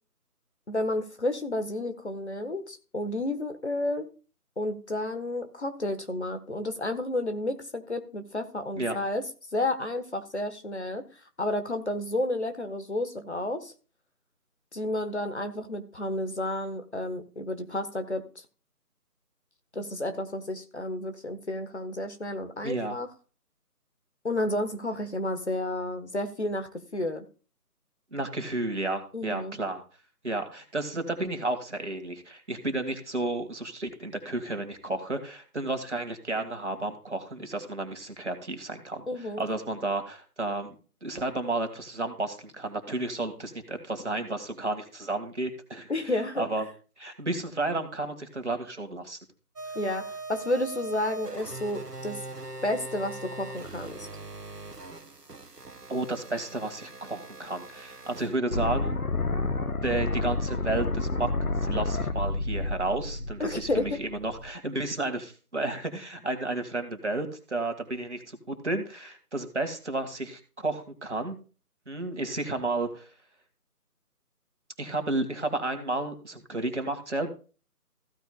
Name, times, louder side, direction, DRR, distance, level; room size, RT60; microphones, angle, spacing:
voice 1, 0.7-4.1 4.6-9.2 9.5-11.0 11.4-13.7 14.7-18.2 19.7-23.1 24.2-27.2 29.1-29.6 39.1-39.4 45.9-46.4 49.7-52.2 52.6-54.1 63.4-64.0, left 1 dB, 45° left, 7 dB, 1.4 m, -31 dB
voice 2, 22.6-23.0 28.1-29.8 30.2-40.7 41.0-45.9 46.4-46.7 47.0-49.2 55.9-59.0 59.8-61.3 61.6-71.4 71.9-73.1 74.8-77.3, right 2 dB, 50° right, 6 dB, 2.2 m, -32 dB
sound 1, 49.6-58.4, right 2 dB, 90° right, 1.3 m, -41 dB
sound 2, 58.5-64.5, left 2 dB, 70° left, 1.2 m, -30 dB
15.5 x 9.0 x 2.4 m, 0.35 s
figure-of-eight pair, 165°, 46 cm